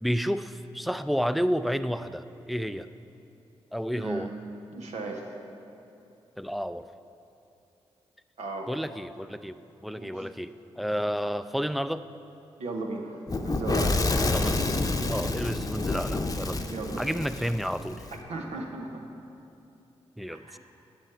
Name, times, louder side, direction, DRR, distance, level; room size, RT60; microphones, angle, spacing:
voice 1, 0.0-2.9 3.7-4.3 6.4-6.9 8.7-12.1 14.3-14.6 15.1-16.7 17.0-18.0 20.2-20.6, equal, ahead, 12 dB, 0.4 m, -31 dB
voice 2, 3.9-4.3 4.7-5.2 8.4-8.7 9.9-10.2 12.6-14.0 16.7-17.2 18.3-19.0 20.3-20.6, right 3 dB, 70° right, 1 dB, 0.9 m, -36 dB
Fire / Explosion, 13.3-18.1, left 2 dB, 30° left, 0.8 m, -28 dB
10.5 x 7.9 x 4.5 m, 2.9 s
supercardioid pair, 40°, 12 cm